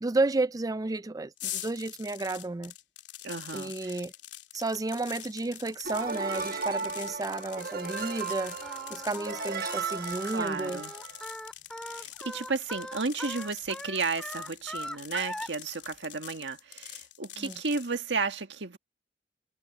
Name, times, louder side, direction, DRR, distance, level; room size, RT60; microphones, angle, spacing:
voice 1, 0.0-2.7 3.5-4.1 4.5-8.5 8.9-10.8 17.4-17.5, right 2 dB, 20° right, 0.4 m, -32 dB
sound 1, 1.4-17.9, left 13 dB, 80° left, 2.9 m, -45 dB
voice 2, 3.2-4.0 10.3-10.9 11.9-18.8, right 4 dB, 80° right, 1.7 m, -33 dB
sound 2, 5.8-11.3, right 5 dB, 55° right, 1.5 m, -35 dB
Singing, 8.6-15.5, left 1 dB, 5° left, 2.1 m, -41 dB
head